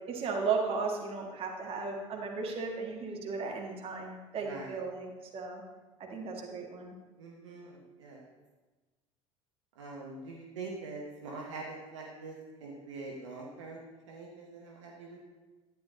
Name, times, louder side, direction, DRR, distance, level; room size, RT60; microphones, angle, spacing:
voice 1, 0.1-5.6 6.0-7.0, right 4 dB, 35° right, 0 dB, 1.9 m, -35 dB
voice 2, 4.4-4.8 7.2-8.3 9.8-15.2, right 3 dB, 65° right, -1 dB, 1.2 m, -44 dB
12.0 x 9.8 x 2.8 m, 1.2 s
figure-of-eight pair, 65°, 16 cm